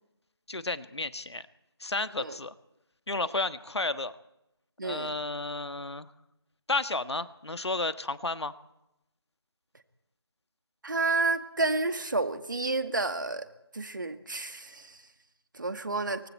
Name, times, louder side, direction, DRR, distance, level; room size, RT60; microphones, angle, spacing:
voice 1, 0.5-1.5 1.8-2.5 3.1-4.1 4.8-6.1 6.7-8.5, left 2 dB, 80° left, 12 dB, 1.4 m, -32 dB
voice 2, 4.8-5.1 10.8-13.5 13.7-15.0 15.5-16.2, right 3 dB, 50° right, 8 dB, 2.0 m, -30 dB
28.0 x 24.5 x 4.4 m, 0.86 s
figure-of-eight pair, 175°, 14 cm